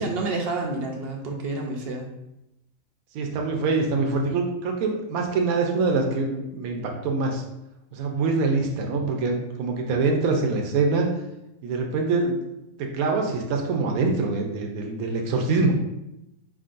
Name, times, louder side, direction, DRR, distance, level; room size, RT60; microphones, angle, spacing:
voice 1, 0.0-2.1, right 3 dB, 60° right, 1 dB, 0.7 m, -29 dB
voice 2, 3.1-7.4 7.9-11.1 11.6-12.4 12.8-15.7, right 3 dB, 80° right, 2 dB, 1.1 m, -24 dB
4.6 x 3.7 x 2.5 m, 0.88 s
omnidirectional pair, 1.5 m